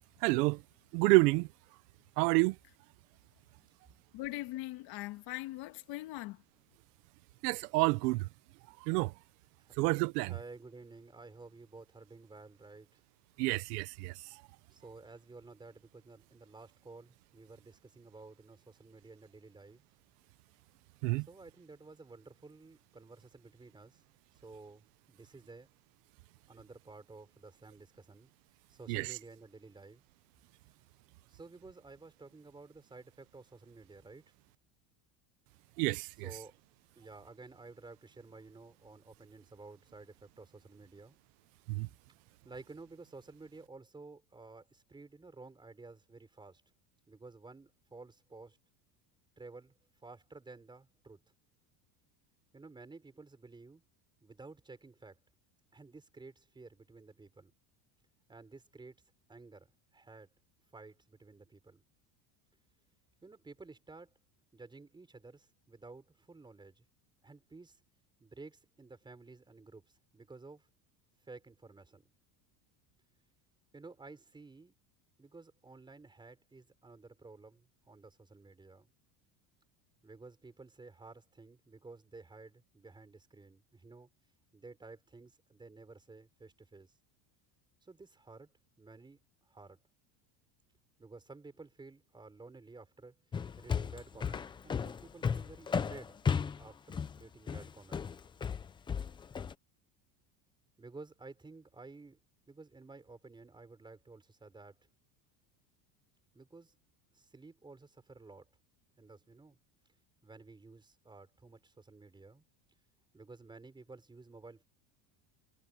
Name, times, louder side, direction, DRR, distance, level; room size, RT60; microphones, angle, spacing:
voice 1, 0.2-0.6 0.9-1.5 2.2-2.5 7.4-8.3 8.9-9.1 9.8-10.3 13.4-14.1 21.0-21.3 28.9-29.1 35.8-36.3 41.7-41.9, right 24 dB, 80° right, 0.9 m, -28 dB
voice 2, 4.1-6.4, left 17 dB, 55° left, 1.8 m, -40 dB
voice 3, 10.2-13.0 14.7-19.8 21.3-24.0 24.4-25.7 26.5-28.3 28.7-30.0 31.3-34.2 36.1-36.5 36.9-41.2 42.4-46.6 47.1-48.6 49.4-49.7 50.0-51.2 52.5-53.8 54.2-55.2 55.7-57.5 58.3-59.0 59.3-60.3 60.7-61.8 63.2-64.1 64.5-66.8 67.2-67.8 68.2-70.7 71.2-72.1 73.7-74.7 75.2-78.9 80.0-84.1 84.5-86.9 87.8-88.5 88.8-89.2 89.5-89.8 91.0-93.1 93.6-96.2 96.6-98.1 100.8-102.2 102.5-104.9 106.3-106.7 107.1-108.5 109.0-109.6 110.2-112.4 113.1-114.6, right 3 dB, 10° right, 4.9 m, -53 dB
sound 1, 93.3-99.5, left 6 dB, 10° left, 0.4 m, -34 dB
cardioid pair, 165°, 46 cm